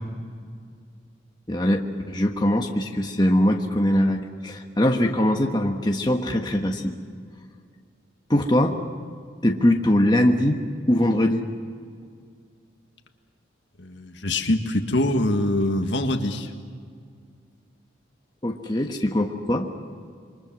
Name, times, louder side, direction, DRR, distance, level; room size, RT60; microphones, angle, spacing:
voice 1, 1.5-6.9 8.3-8.8 9.4-11.5 18.4-19.7, left 1 dB, 20° left, 2 dB, 1.3 m, -22 dB
voice 2, 13.8-16.5, left 1 dB, 65° left, 5 dB, 1.8 m, -24 dB
27.5 x 24.0 x 6.2 m, 2.2 s
head